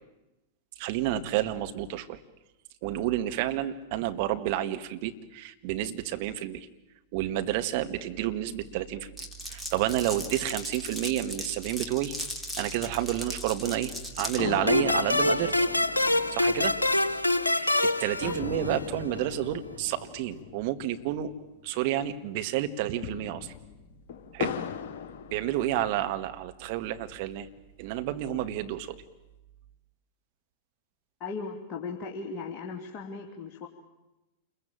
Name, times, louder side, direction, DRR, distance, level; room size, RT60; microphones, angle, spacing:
voice 1, 0.8-2.2 2.8-6.7 7.1-9.1 9.5-12.2 12.6-15.7 16.3-16.8 17.4-21.3 21.6-23.5 24.3-24.6 25.3-27.5 27.8-29.0, right 13 dB, 50° right, 8 dB, 1.9 m, -30 dB
Glass, 9.2-14.4, left 1 dB, 5° left, 3.3 m, -37 dB
sound 1, 14.4-22.0 22.2-22.3 22.8-26.1 26.7-27.6, left 8 dB, 55° left, 1.8 m, -39 dB
sound 2, 14.7-19.0, left 2 dB, 90° left, 1.0 m, -25 dB
voice 2, 31.2-33.7, left 4 dB, 35° left, 1 dB, 3.1 m, -37 dB
28.5 x 22.0 x 9.2 m, 0.99 s
figure-of-eight pair, 95°, 0 cm